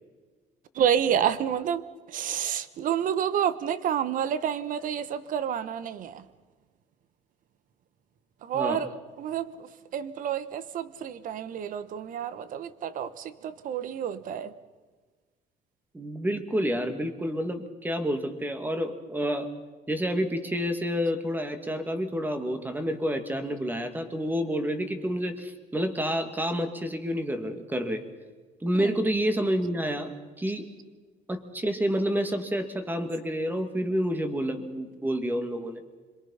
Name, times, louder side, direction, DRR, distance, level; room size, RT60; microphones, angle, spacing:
voice 1, 0.7-6.2 8.4-14.5 28.7-29.0, right 9 dB, 60° right, 14 dB, 1.2 m, -29 dB
voice 2, 15.9-19.5 19.9-28.0 28.6-30.7 31.3-35.8, equal, 10° right, 7 dB, 2.3 m, -29 dB
26.5 x 22.5 x 5.7 m, 1.4 s
cardioid pair, 115°, 15 cm